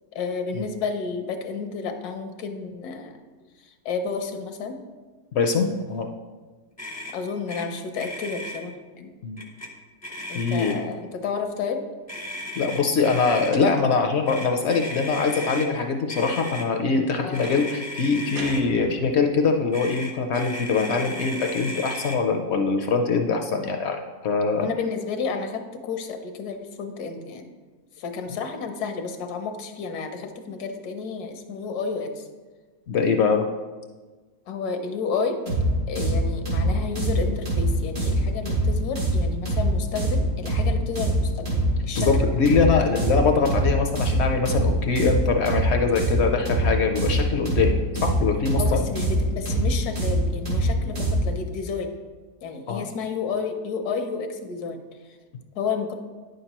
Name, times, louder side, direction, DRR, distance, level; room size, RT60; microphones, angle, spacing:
voice 1, 0.1-3.2 3.6-4.8 7.1-9.1 10.3-11.8 17.2-17.7 24.5-27.5 28.0-32.3 34.5-35.4 35.9-42.1 42.5-42.6 48.6-51.9 52.4-54.8 55.5-55.9, left 5 dB, 85° left, 6 dB, 1.3 m, -31 dB
voice 2, 5.3-6.1 9.2-9.4 10.3-10.8 12.6-24.7 32.9-33.4 36.0-36.2 42.0-47.8 48.0-48.9 52.7-52.9, left 4 dB, 65° left, 4 dB, 0.7 m, -23 dB
Motor vehicle (road), 6.8-7.2 7.5-7.7 7.9-8.6 9.4-9.7 10.0-10.9 12.1-13.5 14.3-15.7 16.1-16.7 17.3-18.6 19.7-22.2, left 1 dB, 20° left, 0.4 m, -35 dB
sound 1, 13.5-14.1 17.4-17.7 18.3-19.4, right 3 dB, 70° right, 1.2 m, -40 dB
sound 2, 35.5-51.4, right 1 dB, 85° right, 2.8 m, -24 dB
9.3 x 6.5 x 2.9 m, 1.4 s
omnidirectional pair, 1.6 m